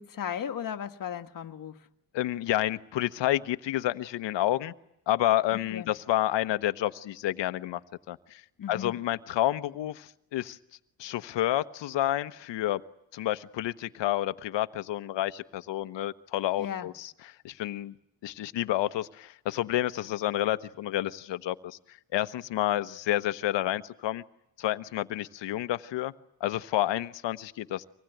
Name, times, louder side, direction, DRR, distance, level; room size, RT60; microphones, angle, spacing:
voice 1, 0.0-1.8 5.5-5.9 8.6-9.0 16.6-16.9, left 8 dB, 45° left, 1.6 m, -36 dB
voice 2, 2.1-4.7 5.1-7.8 8.1-8.4 8.7-10.6 11.0-12.8 13.1-17.1 17.4-17.9 18.2-21.8 22.1-24.2 24.6-26.1 26.4-27.8, left 13 dB, 65° left, 1.2 m, -29 dB
25.0 x 19.5 x 9.2 m
cardioid pair, 95°, 47 cm